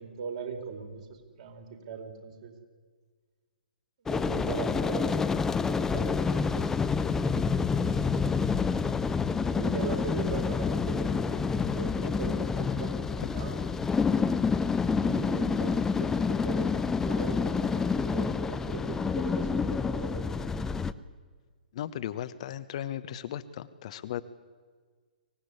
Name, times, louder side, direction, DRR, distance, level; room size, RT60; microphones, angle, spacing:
voice 1, 0.0-2.5 4.1-6.8 7.5-8.5 9.5-13.6 14.9-20.5, right 5 dB, 45° right, 4 dB, 4.5 m, -40 dB
sound 1, 4.1-20.9, left 5 dB, 10° left, 0.7 m, -28 dB
voice 2, 21.7-24.2, left 11 dB, 45° left, 12 dB, 1.1 m, -36 dB
24.0 x 18.0 x 9.9 m, 1.5 s
figure-of-eight pair, 120°, 5 cm